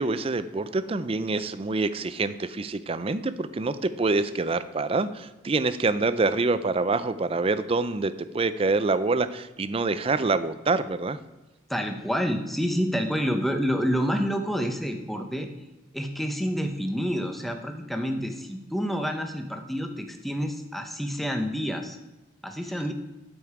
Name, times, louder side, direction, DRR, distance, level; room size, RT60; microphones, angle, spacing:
voice 1, 0.0-11.2, right 3 dB, 30° right, 13 dB, 0.4 m, -26 dB
voice 2, 11.7-15.5 15.9-22.0 22.4-22.9, equal, ahead, 5 dB, 0.8 m, -28 dB
12.5 x 5.5 x 4.8 m, 1.1 s
head